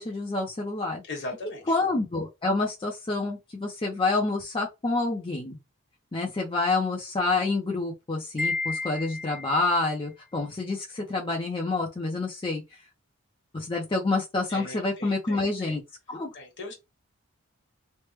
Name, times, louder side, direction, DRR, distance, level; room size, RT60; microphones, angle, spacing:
voice 1, 0.0-1.0 1.7-5.6 6.1-12.6 13.5-15.8 16.1-16.3, left 3 dB, 25° left, 0.5 m, -28 dB
voice 2, 1.1-1.6 14.5-15.8 16.3-16.7, left 2 dB, 55° left, 1.2 m, -39 dB
Wind chime, 8.4-9.8, left 3 dB, ahead, 0.8 m, -31 dB
3.2 x 2.1 x 3.0 m
head